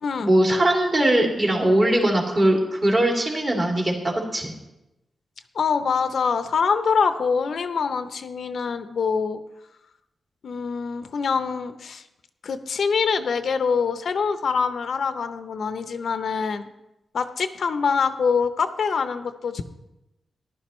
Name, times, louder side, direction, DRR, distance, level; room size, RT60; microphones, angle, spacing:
voice 1, 0.2-4.5, right 1 dB, 30° right, -1 dB, 2.6 m, -20 dB
voice 2, 5.5-9.4 10.4-12.1 12.4-16.7 17.1-19.6, left 5 dB, 65° left, 9 dB, 0.6 m, -24 dB
14.5 x 11.0 x 3.1 m, 0.92 s
wide cardioid pair, 120°, 0 cm